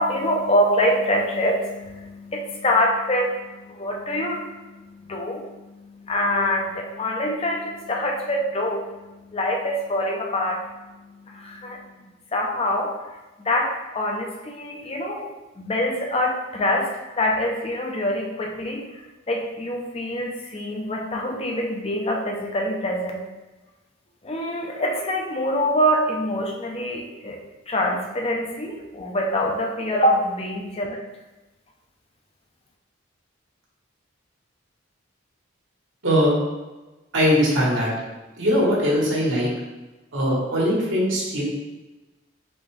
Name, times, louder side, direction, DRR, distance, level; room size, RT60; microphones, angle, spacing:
voice 1, 0.0-12.0 12.3-12.9 13.4-15.3 15.6-19.0 19.3-23.2 24.2-27.4 27.7-31.0, left 1 dB, 30° left, 0 dB, 0.5 m, -25 dB
voice 2, 37.1-37.9 38.4-39.5 40.1-41.4, equal, 75° right, -4 dB, 1.4 m, -20 dB
4.1 x 3.6 x 3.3 m, 1.1 s
head